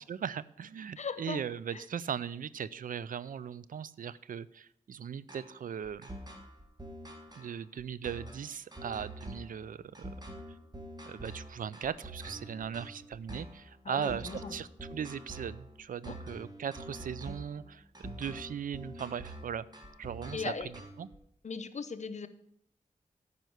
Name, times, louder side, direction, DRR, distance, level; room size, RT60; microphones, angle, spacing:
voice 1, 0.1-6.1 7.3-10.0 11.1-19.7 20.0-20.7 21.0-21.1, right 8 dB, 75° right, 18 dB, 0.4 m, -38 dB
voice 2, 1.0-1.4 1.7-1.9 13.8-14.6 16.1-16.2 20.3-20.7 21.4-22.3, left 5 dB, 55° left, 11 dB, 0.8 m, -38 dB
sound 1, 5.3-21.2, right 1 dB, 30° right, 2.0 m, -46 dB
9.2 x 5.5 x 7.9 m, 0.69 s
cardioid pair, 65°, 14 cm